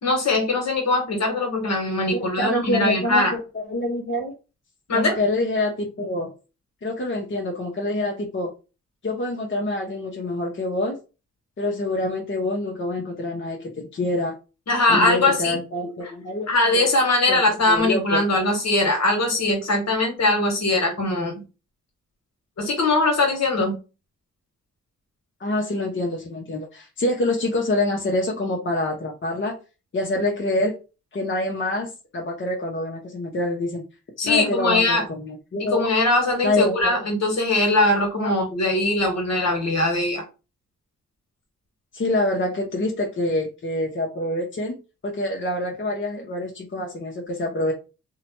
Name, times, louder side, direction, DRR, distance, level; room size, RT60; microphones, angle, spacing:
voice 1, 0.0-3.4 4.9-5.2 14.7-15.6 16.5-21.4 22.6-23.8 34.2-35.0 35.6-40.2, left 2 dB, 60° left, 1 dB, 1.3 m, -21 dB
voice 2, 2.1-4.3 4.9-6.3 6.8-8.5 9.0-11.0 11.6-14.4 14.9-16.8 17.3-17.4 17.7-18.2 25.4-29.6 29.9-30.8 31.1-33.8 34.2-35.8 36.4-37.0 38.2-38.3 41.9-44.8 45.0-47.7, left 1 dB, 40° left, -1 dB, 0.8 m, -26 dB
2.7 x 2.1 x 2.9 m, 0.31 s
supercardioid pair, 45°, 30 cm